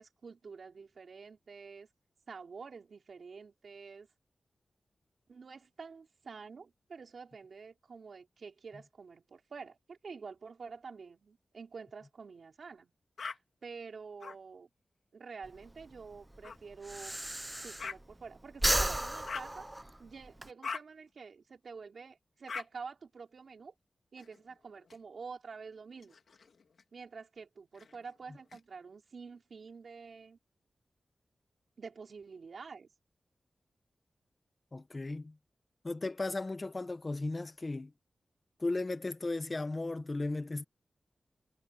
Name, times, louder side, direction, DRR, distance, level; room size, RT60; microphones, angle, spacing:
voice 1, 0.0-1.9 2.3-4.1 5.3-12.9 13.3-14.7 15.1-17.2 17.6-19.7 20.0-23.7 24.1-26.1 26.9-30.4 31.8-32.9, right 5 dB, 60° right, 4.8 m, -48 dB
sound 1, 13.2-13.4 14.2-14.4 16.4-16.6 17.8-18.0 19.2-19.5 20.6-20.8 22.5-22.7 24.2-25.0 25.9-26.8 27.7-28.6, left 5 dB, 65° left, 3.0 m, -42 dB
Breathing, 15.4-18.2 18.5-20.5, right 1 dB, 10° right, 0.8 m, -34 dB
voice 2, 34.7-35.3 35.8-37.9 38.6-40.6, left 2 dB, 25° left, 1.3 m, -35 dB
wide cardioid pair, 155°, 0 cm